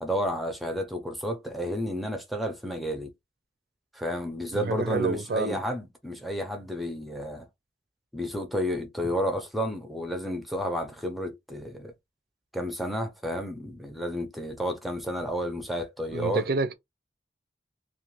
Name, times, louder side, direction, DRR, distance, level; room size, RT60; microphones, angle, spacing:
voice 1, 0.0-3.1 3.9-7.5 8.1-11.9 12.5-16.5, equal, ahead, 0.5 m, -31 dB
voice 2, 4.5-5.6 16.1-16.7, right 4 dB, 55° right, 0.4 m, -28 dB
2.4 x 2.4 x 3.1 m
head